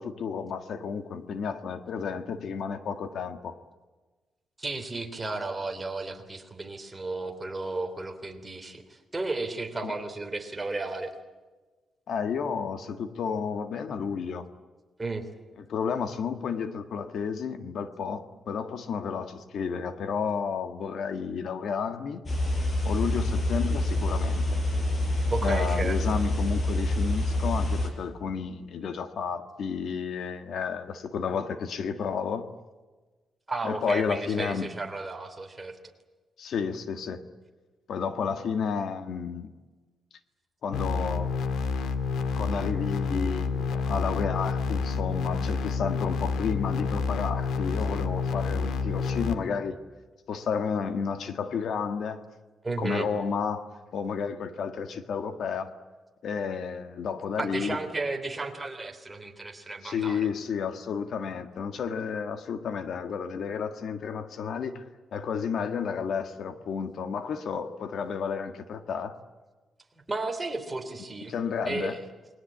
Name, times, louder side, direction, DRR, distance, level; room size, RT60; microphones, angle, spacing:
voice 1, 0.0-3.6 9.8-9.9 12.1-14.4 15.7-22.2 22.8-24.6 25.4-32.5 33.6-34.7 36.4-37.2 37.9-39.5 40.6-41.3 42.3-49.8 50.3-52.2 52.8-53.6 53.9-55.7 56.2-57.8 59.8-64.8 65.1-69.1 71.3-72.0, left 6 dB, 60° left, 9 dB, 1.6 m, -31 dB
voice 2, 4.6-11.1 15.0-15.3 25.3-26.0 33.5-35.8 52.6-53.1 57.4-60.3 70.1-71.3 71.6-72.0, right 3 dB, 15° right, 5 dB, 3.3 m, -33 dB
sound 1, 22.3-27.9, left 1 dB, 30° left, 5.2 m, -27 dB
sound 2, 40.7-49.3, left 4 dB, 85° left, 1.9 m, -29 dB
28.5 x 21.5 x 8.6 m, 1.3 s
cardioid pair, 145°, 0 cm